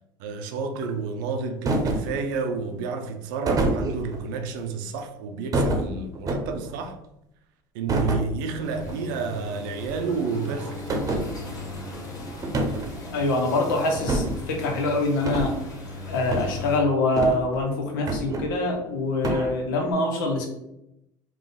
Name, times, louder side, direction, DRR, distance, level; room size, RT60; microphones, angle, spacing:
voice 1, 0.2-7.0 7.7-11.1, right 5 dB, 80° right, 0.6 m, -30 dB
sound 1, 1.7-2.2 3.5-4.2 5.5-6.7 7.9-8.3 8.7-9.0 9.2-9.3 9.8-9.9 10.9-11.3 12.4-13.0 14.0-14.4 15.2-15.5 16.3-16.5 17.2-17.6 18.1-18.8 19.2-19.5, right 2 dB, 35° right, 0.8 m, -26 dB
sound 2, 8.6-16.8, left 2 dB, 30° left, 1.3 m, -38 dB
voice 2, 13.1-15.5 16.1-20.5, left 2 dB, 90° left, 1.0 m, -24 dB
3.7 x 2.4 x 3.9 m
supercardioid pair, 105°, 11 cm